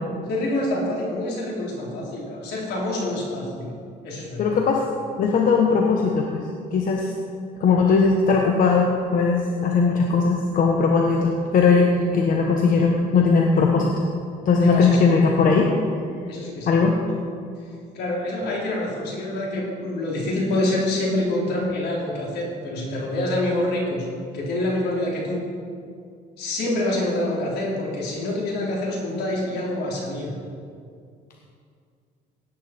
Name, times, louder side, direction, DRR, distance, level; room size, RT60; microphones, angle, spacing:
voice 1, 0.3-3.7 4.0-4.6 9.4-9.5 14.5-15.3 16.3-16.8 17.9-24.1 24.3-25.4 26.4-30.3, left 1 dB, 75° left, -2 dB, 3.6 m, -26 dB
voice 2, 4.4-4.8 5.2-6.4 6.7-7.1 7.6-14.0 14.4-15.7 16.7-17.0, left 4 dB, 55° left, 1 dB, 1.2 m, -19 dB
17.5 x 9.1 x 4.3 m, 2.3 s
cardioid pair, 110°, 17 cm